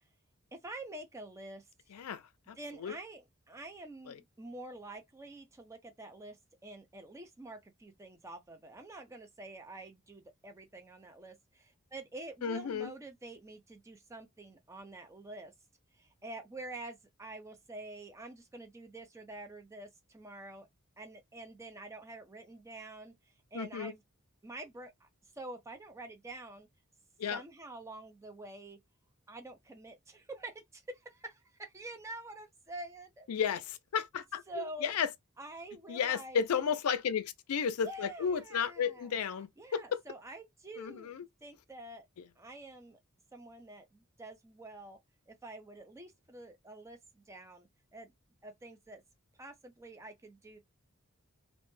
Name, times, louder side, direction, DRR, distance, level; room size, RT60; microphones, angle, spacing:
voice 1, 0.5-1.6 2.6-6.4 6.6-15.5 16.0-20.7 21.0-23.1 23.5-24.0 24.4-25.1 25.3-26.7 27.3-28.8 29.3-33.3 34.5-34.9 35.4-36.4 37.8-39.1 39.6-41.1 41.4-42.1 42.4-43.0 43.3-45.0 45.3-47.7 47.9-48.1 48.4-49.0 49.4-50.6, right 2 dB, 15° right, 0.5 m, -47 dB
voice 2, 1.9-2.9 4.1-4.2 12.4-12.9 23.5-23.9 27.2-27.4 33.3-35.1 35.9-40.0 40.8-41.3 42.2-42.3, left 7 dB, 90° left, 0.4 m, -33 dB
2.1 x 2.1 x 3.0 m
head